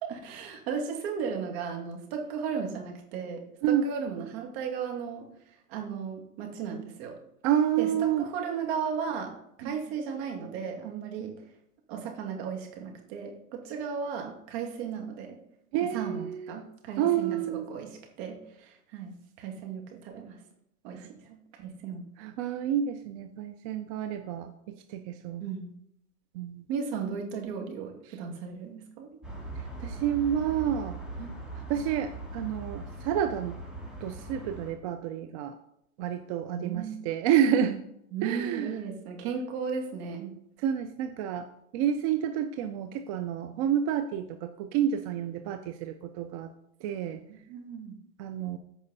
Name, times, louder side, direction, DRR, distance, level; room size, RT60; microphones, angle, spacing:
voice 1, 0.0-7.2 7.8-11.4 11.9-15.4 15.8-19.1 19.4-20.4 20.8-22.0 25.4-25.7 26.7-29.1 36.5-37.0 38.1-40.4 47.3-48.0, right 6 dB, 45° right, 2 dB, 2.5 m, -35 dB
voice 2, 7.4-8.2 9.6-9.7 15.7-16.6 17.0-17.7 21.0-21.1 22.2-25.4 26.3-26.7 29.8-31.4 31.7-33.6 34.0-35.6 36.0-37.8 38.2-38.7 40.6-41.5 41.7-46.5 46.8-47.2 48.2-48.6, right 9 dB, 25° right, 7 dB, 0.4 m, -29 dB
sound 1, 29.2-34.7, right 2 dB, ahead, 2.0 m, -40 dB
14.5 x 5.0 x 4.1 m, 0.76 s
hypercardioid pair, 120°, 44 cm